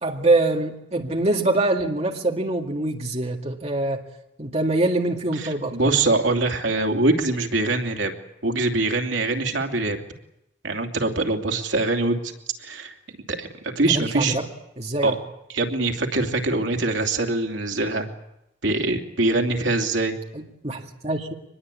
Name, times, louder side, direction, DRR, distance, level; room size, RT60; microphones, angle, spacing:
voice 1, 0.0-4.0 4.4-5.9 13.9-14.4 14.8-15.2 20.3-21.3, right 2 dB, 35° right, 1 dB, 2.0 m, -24 dB
voice 2, 5.4-8.1 8.4-10.0 10.6-12.3 12.6-12.9 13.3-13.5 13.7-14.4 15.0-15.2 15.5-18.1 18.6-20.1, right 2 dB, 85° right, 3 dB, 2.9 m, -23 dB
24.5 x 21.0 x 8.5 m, 0.84 s
head